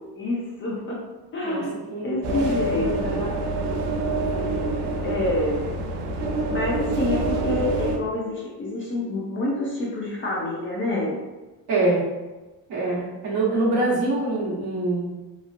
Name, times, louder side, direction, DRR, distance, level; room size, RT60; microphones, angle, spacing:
voice 1, 0.2-1.0 1.3-1.7 2.0-3.2 5.0-5.6 6.5-11.2, left 1 dB, 30° left, -3 dB, 0.4 m, -27 dB
voice 2, 1.4-3.4 4.1-4.6 11.7-12.1 12.7-15.1, right 2 dB, 70° right, -5 dB, 1.0 m, -26 dB
sound 1, 2.2-8.0, right 2 dB, 90° right, 0.6 m, -26 dB
2.9 x 2.4 x 2.4 m, 1.1 s
cardioid pair, 180°, 40 cm